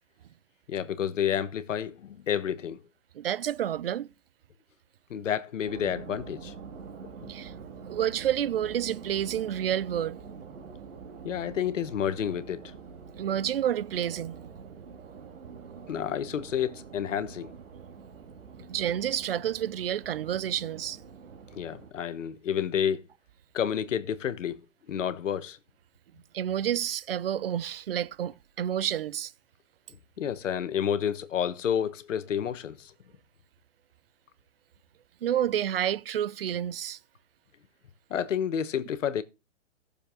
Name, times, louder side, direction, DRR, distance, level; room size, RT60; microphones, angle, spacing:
voice 1, 0.7-2.8 5.1-6.5 11.2-12.6 15.9-17.5 21.5-23.0 23.5-24.6 24.9-25.6 30.2-32.9 38.1-39.2, left 9 dB, 75° left, 1.3 m, -30 dB
voice 2, 3.2-4.1 7.3-7.5 7.9-10.2 13.2-14.4 18.7-21.0 26.3-29.3 35.2-37.0, right 10 dB, 50° right, 0.5 m, -29 dB
sound 1, 5.7-21.9, right 5 dB, 75° right, 2.0 m, -45 dB
15.5 x 7.0 x 3.7 m
hypercardioid pair, 170°, 38 cm